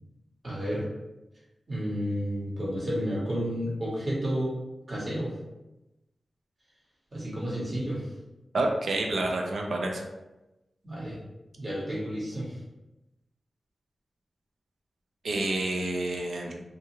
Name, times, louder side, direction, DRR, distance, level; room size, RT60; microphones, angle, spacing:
voice 1, 0.4-0.9 1.7-4.5 4.9-5.3 7.1-8.0 10.8-11.2 11.6-12.5, equal, 35° right, -6 dB, 1.1 m, -31 dB
voice 2, 8.5-10.1 15.2-16.6, right 2 dB, 75° right, 2 dB, 0.4 m, -28 dB
2.5 x 2.4 x 2.8 m, 0.98 s
wide cardioid pair, 140°, 0 cm